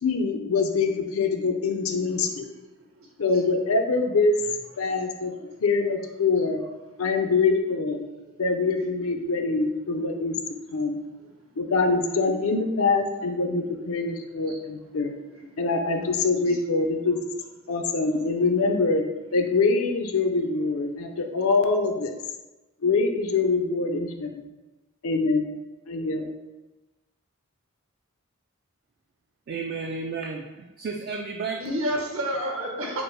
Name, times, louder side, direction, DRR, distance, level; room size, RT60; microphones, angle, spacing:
voice 1, 0.0-2.5 3.2-4.3 4.8-5.3 5.6-6.6 7.0-8.0 8.4-10.4 10.7-11.0 11.6-15.1 15.6-17.2 17.7-19.0 19.3-22.2 22.8-24.4 25.0-25.5 25.9-26.3, left 4 dB, 75° left, 4 dB, 0.6 m, -24 dB
voice 2, 14.2-14.6 15.3-15.5 16.5-16.6 18.0-18.1 31.6-33.0, equal, 70° right, -1 dB, 1.2 m, -31 dB
voice 3, 29.5-31.6, right 4 dB, 50° right, 2 dB, 0.4 m, -32 dB
5.2 x 2.1 x 4.6 m, 1.1 s
head